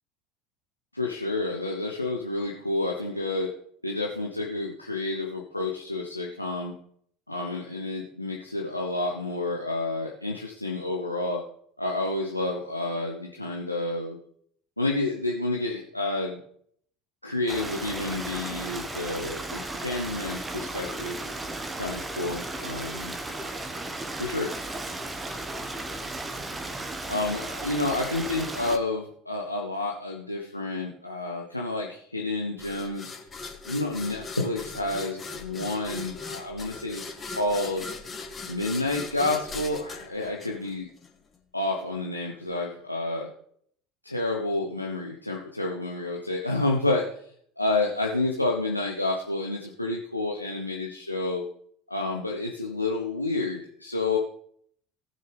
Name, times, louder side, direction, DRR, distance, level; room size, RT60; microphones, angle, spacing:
voice 1, 0.9-3.5 3.8-6.7 7.3-11.4 11.8-14.2 14.8-16.4 17.2-21.2 21.8-23.1 24.2-24.5 27.1-33.1 33.7-37.9 38.5-40.9 41.5-43.3 44.0-47.0 47.6-51.4 51.9-54.2, left 2 dB, 90° left, -1 dB, 0.9 m, -29 dB
Stream, 17.5-28.8, right 2 dB, 15° right, 1.3 m, -35 dB
sound 1, 32.6-41.1, left 4 dB, 25° left, 2.5 m, -39 dB
18.5 x 6.7 x 3.4 m, 0.64 s
figure-of-eight pair, 70°, 0 cm